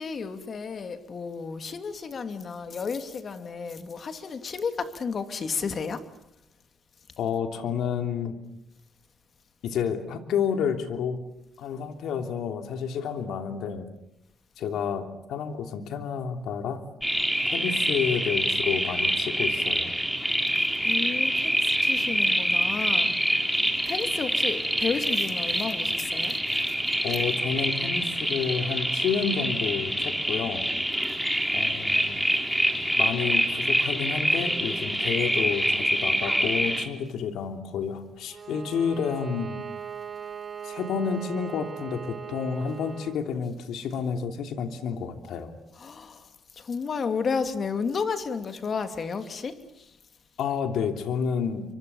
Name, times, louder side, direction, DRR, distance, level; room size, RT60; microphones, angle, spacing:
voice 1, 0.0-6.0 20.8-23.5 23.9-26.4 26.7-26.8 31.1-31.6 45.8-50.0, left 5 dB, 45° left, 2.8 m, -32 dB
voice 2, 7.2-8.4 9.6-11.2 11.6-13.9 14.6-16.8 17.5-19.9 27.0-30.7 31.5-32.2 33.0-39.6 40.6-45.5 50.4-51.6, left 7 dB, 80° left, 3.1 m, -30 dB
sound 1, 17.0-36.9, equal, ahead, 4.2 m, -26 dB
Bowed string instrument, 38.3-43.2, right 7 dB, 45° right, 2.2 m, -39 dB
29.0 x 25.0 x 7.2 m
cardioid pair, 90°, 0 cm